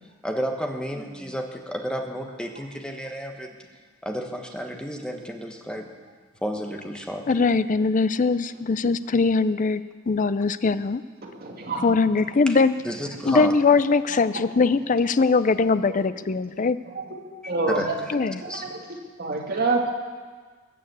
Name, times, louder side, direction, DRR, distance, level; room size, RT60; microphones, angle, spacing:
voice 1, 0.2-3.6 4.0-5.9 6.4-7.6 12.5-12.6 12.8-13.6 17.7-18.1 18.4-18.6, equal, 5° left, 3 dB, 1.2 m, -31 dB
voice 2, 7.3-11.0 11.8-12.7 13.2-16.8 18.1-18.4, left 4 dB, 40° left, 14 dB, 0.5 m, -21 dB
voice 3, 11.2-11.9 15.9-16.0 16.9-17.1 17.5-17.9 18.4-18.8 19.2-19.9, right 3 dB, 50° right, 0 dB, 2.3 m, -27 dB
20.5 x 7.0 x 8.2 m, 1.5 s
head